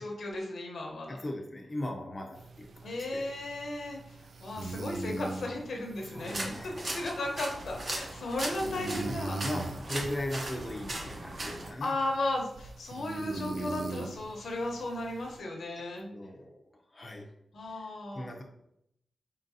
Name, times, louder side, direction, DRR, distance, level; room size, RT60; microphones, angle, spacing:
voice 1, 0.0-1.2 2.8-9.4 11.8-16.2 17.5-18.3, left 2 dB, 75° left, 1 dB, 0.9 m, -35 dB
voice 2, 1.1-3.3 5.7-7.2 9.1-11.9 16.1-16.6 16.9-17.3 18.1-18.4, left 1 dB, 20° left, 0 dB, 0.6 m, -38 dB
sound 1, 2.3-15.4, right 3 dB, 65° right, 0.3 m, -42 dB
sound 2, 6.2-11.7, right 1 dB, 40° right, 0.7 m, -38 dB
4.2 x 3.9 x 2.7 m, 0.75 s
wide cardioid pair, 170°, 0 cm